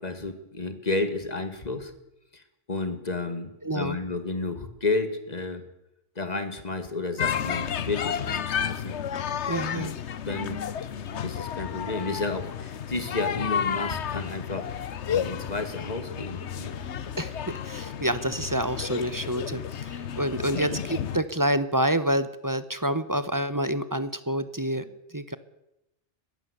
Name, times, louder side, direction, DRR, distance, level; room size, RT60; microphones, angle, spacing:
voice 1, 0.0-1.9 2.3-2.4 2.7-5.7 6.2-9.0 9.7-9.9 10.2-10.6 11.2-14.7 15.1-16.7 20.5-20.8, left 3 dB, 35° left, 9 dB, 2.1 m, -32 dB
voice 2, 3.6-4.0 9.5-9.9 17.2-25.4, right 1 dB, 15° right, 13 dB, 1.0 m, -28 dB
sound 1, 7.2-21.2, left 8 dB, 70° left, 1.2 m, -32 dB
21.5 x 15.0 x 8.1 m, 0.87 s
omnidirectional pair, 1.3 m